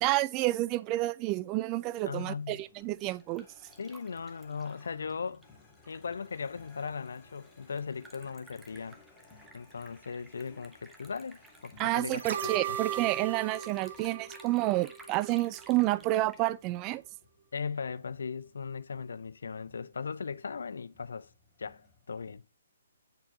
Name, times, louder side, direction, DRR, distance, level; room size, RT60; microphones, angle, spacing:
voice 1, 0.0-3.5 11.8-17.0, right 18 dB, 25° right, 0.3 m, -29 dB
voice 2, 2.1-2.6 3.8-5.4 5.9-9.0 9.5-12.8 17.5-21.3 21.6-22.4, left 5 dB, 65° left, 0.4 m, -38 dB
sound 1, 2.5-22.3, left 3 dB, 15° left, 2.0 m, -61 dB
Liquid, 2.7-17.2, right 2 dB, 5° right, 0.9 m, -56 dB
sound 2, 12.2-15.3 15.6-15.7, right 9 dB, 50° right, 0.9 m, -37 dB
7.6 x 4.6 x 2.7 m
figure-of-eight pair, 135°, 0 cm